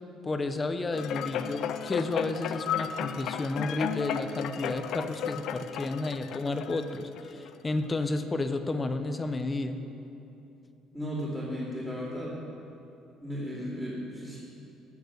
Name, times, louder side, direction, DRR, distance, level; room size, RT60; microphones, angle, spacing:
voice 1, 0.2-9.8, left 2 dB, 20° left, 8 dB, 0.7 m, -31 dB
sound 1, 0.9-7.5 8.0-8.1, left 9 dB, 60° left, 0.5 m, -34 dB
voice 2, 10.9-12.4 13.2-14.4, equal, 10° right, -11 dB, 2.8 m, -35 dB
13.5 x 7.1 x 6.5 m, 2.9 s
cardioid pair, 130°, 0 cm